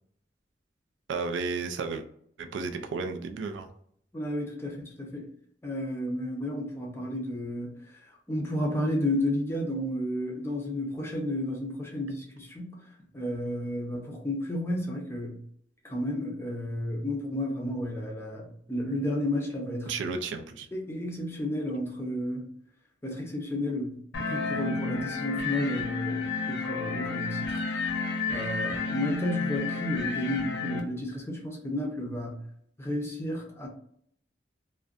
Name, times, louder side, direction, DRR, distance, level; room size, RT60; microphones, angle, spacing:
voice 1, 1.1-2.0 2.4-3.7 19.9-20.7, right 4 dB, 90° right, 6 dB, 0.4 m, -33 dB
voice 2, 4.1-5.3 5.6-7.7 8.3-12.8 13.1-15.4 15.8-19.9 20.7-22.5 23.0-23.9 24.2-27.7 28.3-32.4 32.8-33.7, left 1 dB, 15° left, -1 dB, 0.5 m, -32 dB
sound 1, 24.1-30.8, left 4 dB, 85° left, 0.5 m, -31 dB
2.4 x 2.1 x 2.4 m, 0.66 s
head